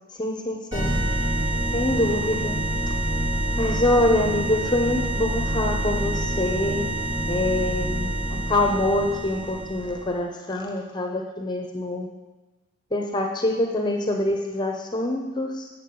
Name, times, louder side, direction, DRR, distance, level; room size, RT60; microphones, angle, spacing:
voice 1, 0.2-0.9 1.7-2.6 3.6-6.9 7.3-12.1 12.9-15.7, left 1 dB, 20° left, 2 dB, 0.7 m, -25 dB
sound 1, 0.7-10.1, right 1 dB, 30° right, 3.0 m, -27 dB
8.6 x 7.2 x 5.2 m, 1.2 s
head